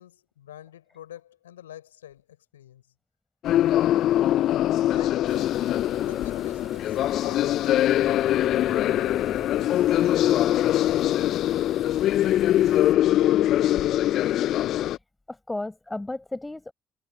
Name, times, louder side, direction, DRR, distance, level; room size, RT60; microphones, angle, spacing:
voice 1, 0.0-2.8 4.9-5.6 6.1-11.5, left 11 dB, 85° left, 5.2 m, -47 dB
sound 1, 3.4-15.0, left 13 dB, 65° left, 0.5 m, -22 dB
sound 2, 5.3-13.0, right 1 dB, 10° right, 3.7 m, -48 dB
voice 2, 15.3-16.7, left 2 dB, 15° left, 4.8 m, -34 dB
hypercardioid pair, 50°, 0 cm